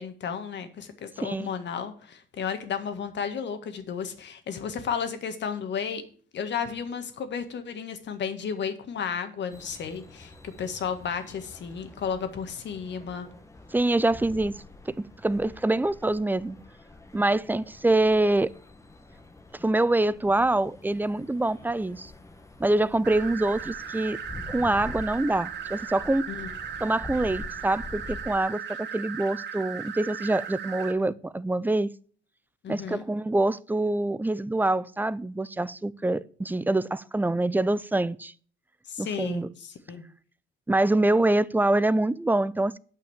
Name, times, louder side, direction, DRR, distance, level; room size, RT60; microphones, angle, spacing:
voice 1, 0.0-6.0 6.3-10.3 10.6-13.3 26.3-26.5 32.6-33.0 38.9-40.0, left 7 dB, 65° left, 1.7 m, -33 dB
sound 1, 9.5-28.4, left 2 dB, 15° left, 1.2 m, -46 dB
voice 2, 13.7-16.6 17.1-18.5 19.6-22.1 22.6-24.2 24.5-26.3 26.8-31.9 32.7-38.3 39.0-39.5 40.7-42.8, right 2 dB, 10° right, 0.5 m, -25 dB
sound 2, 23.0-30.9, right 8 dB, 65° right, 2.2 m, -37 dB
9.1 x 5.8 x 7.1 m
cardioid pair, 90°, 20 cm